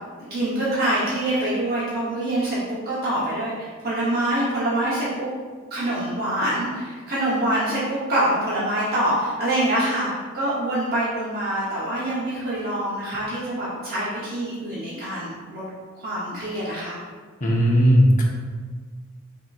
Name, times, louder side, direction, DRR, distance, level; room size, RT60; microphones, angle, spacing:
voice 1, 0.2-5.3 5.7-10.1 10.3-15.7 16.0-17.0, right 1 dB, 45° right, -9 dB, 0.8 m, -25 dB
voice 2, 17.4-18.2, equal, 40° left, -2 dB, 0.7 m, -16 dB
5.8 x 2.9 x 2.3 m, 1.5 s
head